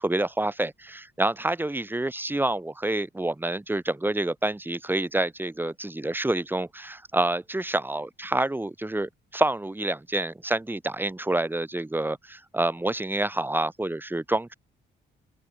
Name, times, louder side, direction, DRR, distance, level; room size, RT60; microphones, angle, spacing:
voice 1, 0.0-14.5, right 2 dB, 10° right, 1.1 m, -28 dB
open air
cardioid pair, 90°, 20 cm